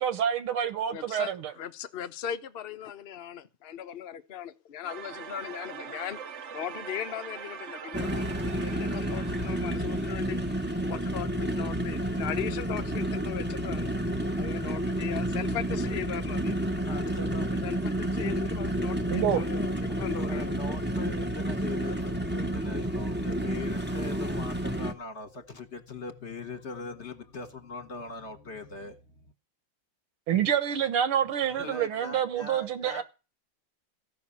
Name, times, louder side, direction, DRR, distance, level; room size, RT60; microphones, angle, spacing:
voice 1, 0.0-1.5 19.1-19.4 30.3-33.0, right 9 dB, 85° right, 2.0 m, -27 dB
voice 2, 0.9-6.2 6.5-10.4 10.8-13.9 14.4-16.6 17.5-20.8, left 9 dB, 60° left, 0.6 m, -38 dB
sound 1, 4.8-11.7, right 7 dB, 60° right, 0.7 m, -43 dB
sound 2, 7.9-24.9, right 1 dB, 10° right, 0.5 m, -30 dB
voice 3, 16.8-17.5 20.2-29.2 31.5-33.0, left 3 dB, 35° left, 1.4 m, -41 dB
15.0 x 6.1 x 8.5 m
omnidirectional pair, 2.3 m